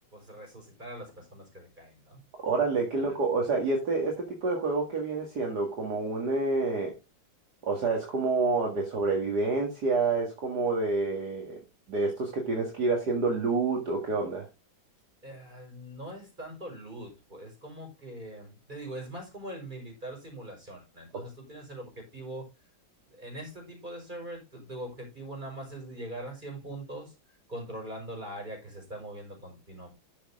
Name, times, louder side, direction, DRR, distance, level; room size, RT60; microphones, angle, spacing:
voice 1, 0.1-2.2 2.9-3.1 15.2-22.5 23.1-27.1 27.5-29.9, right 1 dB, 25° right, 5.1 m, -42 dB
voice 2, 2.4-6.9 7.6-11.6 11.9-14.5 21.1-21.2, right 3 dB, 55° right, 2.5 m, -28 dB
12.0 x 6.4 x 3.7 m
omnidirectional pair, 2.1 m